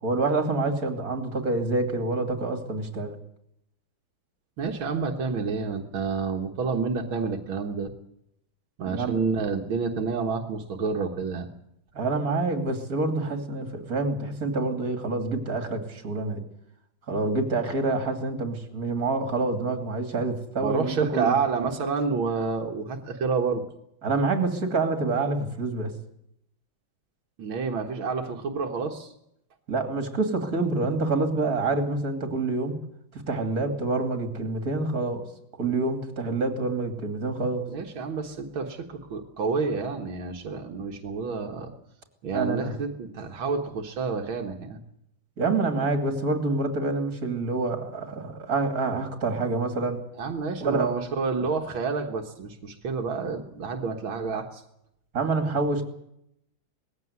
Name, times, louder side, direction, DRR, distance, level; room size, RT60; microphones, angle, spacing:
voice 1, 0.0-3.2 8.8-9.2 11.9-16.4 17.1-21.4 24.0-25.9 29.7-32.8 33.1-35.2 35.6-37.7 42.3-42.7 45.4-50.0 50.6-50.9 55.1-55.8, right 3 dB, 45° right, 6 dB, 3.1 m, -27 dB
voice 2, 4.6-7.9 8.8-11.5 20.6-23.6 27.4-29.1 37.7-41.7 42.2-44.8 50.2-54.6, right 5 dB, 85° right, 3 dB, 2.2 m, -29 dB
20.0 x 15.5 x 9.6 m, 0.78 s
omnidirectional pair, 2.2 m